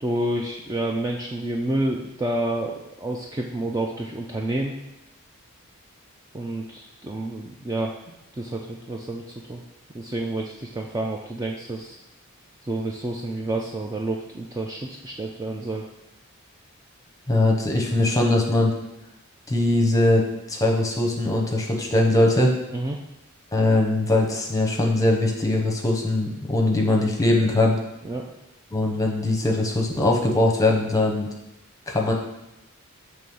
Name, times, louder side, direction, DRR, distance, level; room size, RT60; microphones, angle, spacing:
voice 1, 0.0-4.8 6.3-9.6 9.9-12.0 12.6-15.9 22.7-23.0 28.0-28.2, right 1 dB, 15° right, 0 dB, 0.3 m, -29 dB
voice 2, 17.3-18.7 19.5-20.2 20.5-22.5 23.5-27.8 28.7-31.3 31.9-32.1, left 2 dB, 15° left, 1 dB, 0.8 m, -21 dB
6.2 x 3.3 x 5.4 m, 0.91 s
head